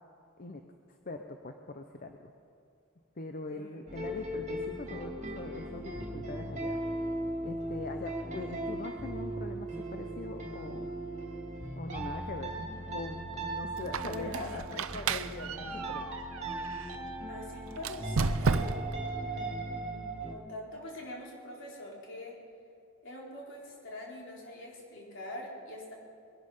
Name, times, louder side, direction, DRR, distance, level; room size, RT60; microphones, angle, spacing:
voice 1, 1.1-2.3 3.2-6.8 7.4-10.9 11.8-16.1, left 2 dB, 45° left, 5 dB, 0.8 m, -42 dB
voice 2, 3.5-3.8 12.4-12.8 14.0-14.5 17.3-18.8 19.2-22.4 23.0-25.9, left 1 dB, 65° left, -3 dB, 3.7 m, -44 dB
sound 1, 3.9-20.3, right 1 dB, 35° right, 2.5 m, -38 dB
Squeak, 13.8-17.0 17.8-19.0, right 5 dB, 85° right, 0.6 m, -33 dB
21.5 x 11.5 x 5.5 m, 2.4 s
head